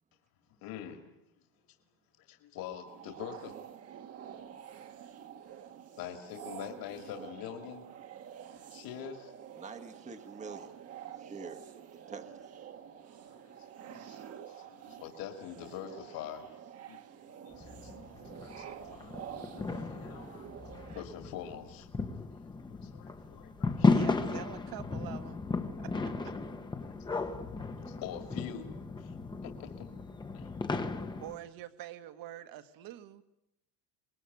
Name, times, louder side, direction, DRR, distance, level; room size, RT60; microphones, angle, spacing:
voice 1, 0.6-1.0 2.2-3.5 6.0-7.8 8.7-9.3 13.2-16.5 16.9-17.9 18.2-21.9 22.3-24.2 25.9-26.1 26.8-26.9 27.5-28.7 29.0-29.1 29.4-29.9 30.3-30.5, left 9 dB, 45° left, 5 dB, 2.4 m, -45 dB
sound 1, 2.8-21.0, right 9 dB, 30° right, 1.4 m, -48 dB
voice 2, 9.5-10.7 11.2-12.5, right 5 dB, 15° right, 8 dB, 1.2 m, -46 dB
sound 2, 17.5-31.4, left 3 dB, 10° left, 0.9 m, -35 dB
voice 3, 23.9-25.4 25.8-25.9 26.3-26.4 31.2-33.2, right 13 dB, 45° right, 11 dB, 1.6 m, -45 dB
25.5 x 21.0 x 9.4 m, 0.83 s
cardioid pair, 170°, 47 cm